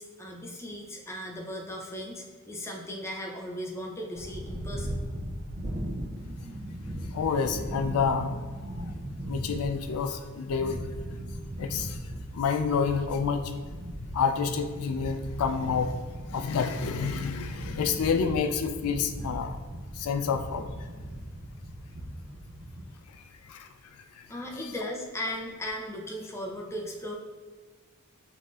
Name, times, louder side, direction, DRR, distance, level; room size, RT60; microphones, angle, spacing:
voice 1, 0.0-5.0 24.3-27.2, left 1 dB, 10° left, 0 dB, 0.5 m, -37 dB
sound 1, 4.2-22.8, equal, 40° right, 0.5 m, -38 dB
voice 2, 7.1-8.4 8.7-8.9 9.3-10.8 11.6-12.0 12.3-13.5 14.1-16.0 16.3-19.6 19.9-20.7 23.4-23.7 24.2-24.3, left 6 dB, 80° left, 7 dB, 0.4 m, -28 dB
7.4 x 2.6 x 2.4 m, 1.5 s
head